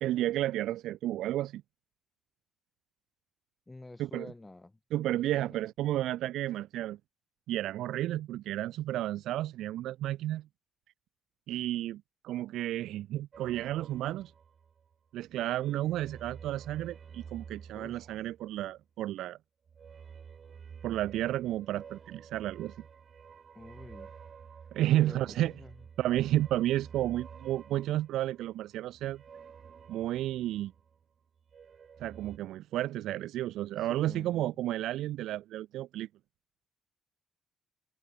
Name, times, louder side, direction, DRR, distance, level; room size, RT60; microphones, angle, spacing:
voice 1, 0.0-1.6 4.0-4.3 4.9-7.0 7.5-10.4 11.5-14.3 15.1-19.4 20.8-22.7 24.7-25.5 26.0-29.2 29.9-30.7 32.0-36.1, right 14 dB, 85° right, 0.8 m, -32 dB
voice 2, 3.7-4.8 5.1-5.7 17.7-18.1 23.5-24.1 24.9-25.8 33.8-34.5, left 2 dB, 15° left, 6.5 m, -49 dB
sound 1, 13.3-15.0 15.3-18.8 19.7-31.0 31.4-32.4, right 7 dB, 50° right, 7.2 m, -51 dB
cardioid pair, 90°, 0 cm